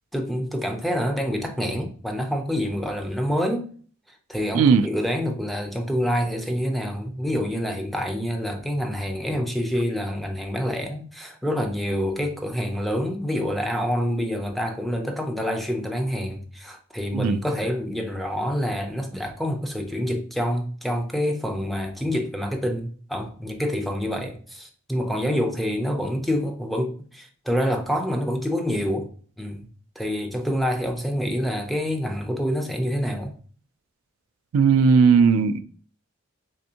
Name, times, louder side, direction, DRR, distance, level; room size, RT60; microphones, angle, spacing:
voice 1, 0.1-3.7 4.3-29.1 29.4-29.7 30.0-33.3, equal, ahead, 0.4 m, -27 dB
voice 2, 4.5-4.9 17.1-17.4 34.5-35.6, right 5 dB, 80° right, 0.3 m, -17 dB
3.5 x 3.4 x 2.7 m
head